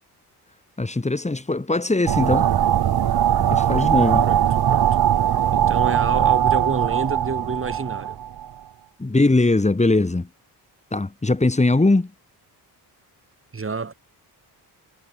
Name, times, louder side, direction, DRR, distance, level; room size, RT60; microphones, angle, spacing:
voice 1, 0.8-2.5 3.5-4.3 9.0-10.3 10.9-12.1, left 2 dB, 15° left, 7.0 m, -20 dB
sound 1, 2.1-8.4, right 10 dB, 70° right, 3.0 m, -20 dB
voice 2, 4.2-5.0 5.5-8.2 13.5-13.9, right 4 dB, 30° right, 7.7 m, -28 dB
cardioid pair, 110°, 40 cm